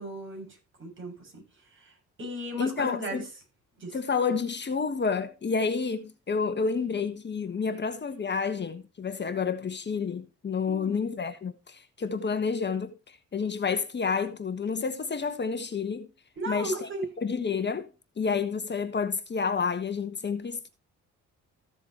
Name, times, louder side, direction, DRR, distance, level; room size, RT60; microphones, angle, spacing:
voice 1, 0.0-1.4 1.7-3.2 3.8-4.0 10.7-11.0 16.4-17.0, right 1 dB, 40° right, 6.7 m, -36 dB
voice 2, 2.6-3.2 3.9-16.1 16.5-16.9 17.2-17.9 18.2-20.7, left 5 dB, 35° left, 1.4 m, -29 dB
15.0 x 7.2 x 3.0 m
cardioid pair, 90°, 30 cm